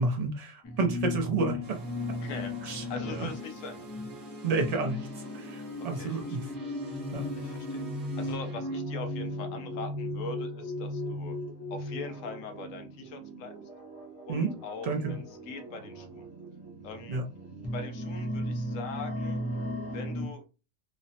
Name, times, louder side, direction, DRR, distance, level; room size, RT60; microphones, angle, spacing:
voice 1, 0.0-1.6 2.6-2.8 3.1-3.3 4.4-5.0 5.3-6.4 7.1-7.3 14.3-14.5 14.8-15.1 17.1-17.2, right 3 dB, 75° right, 3 dB, 0.3 m, -30 dB
sound 1, 0.6-12.9 13.7-14.0 15.2-15.3 15.9-16.1 16.8-20.3, left 1 dB, 25° left, 0.3 m, -36 dB
sound 2, 1.6-20.3, right 4 dB, 60° right, 0.9 m, -48 dB
voice 2, 2.2-3.9 5.9-6.6 7.4-7.8 8.2-11.4 11.7-13.5 14.3-16.3 16.8-17.2 17.7-19.4 19.9-20.5, left 4 dB, 80° left, 7 dB, 1.0 m, -42 dB
3.1 x 2.0 x 2.7 m, 0.31 s
omnidirectional pair, 1.4 m